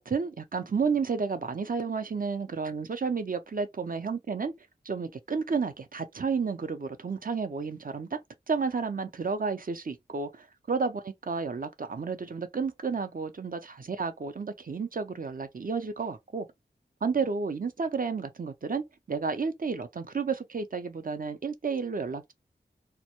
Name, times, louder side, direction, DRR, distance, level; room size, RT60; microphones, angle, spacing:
voice 1, 0.0-4.5 4.9-8.2 8.5-16.5 17.0-22.3, right 5 dB, 50° right, 0.5 m, -31 dB
2.1 x 2.0 x 2.8 m
wide cardioid pair, 45°, 18 cm